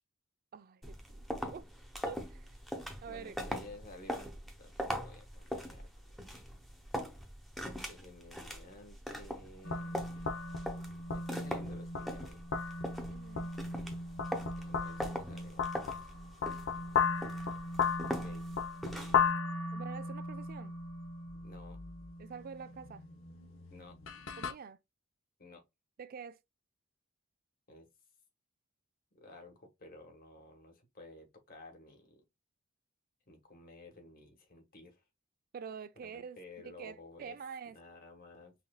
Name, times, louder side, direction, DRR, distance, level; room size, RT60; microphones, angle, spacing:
voice 1, 0.5-1.6 2.1-2.5 3.0-3.4 13.1-13.5 19.7-20.7 22.2-23.0 24.4-24.8 26.0-26.4 35.5-36.4 36.6-37.8, right 6 dB, 45° right, 0.4 m, -46 dB
sound 1, 0.8-19.3, equal, ahead, 0.8 m, -42 dB
voice 2, 3.1-4.3 4.6-5.9 7.6-10.0 11.1-12.4 14.6-16.1 18.1-18.5 18.9-19.2 21.4-21.8 23.7-24.0 25.4-25.6 27.7-27.9 29.1-32.2 33.3-35.0 36.0-37.4 37.6-38.5, left 2 dB, 50° left, 1.4 m, -54 dB
sound 2, 9.6-24.5, left 5 dB, 80° left, 0.8 m, -36 dB
5.7 x 2.6 x 2.2 m
head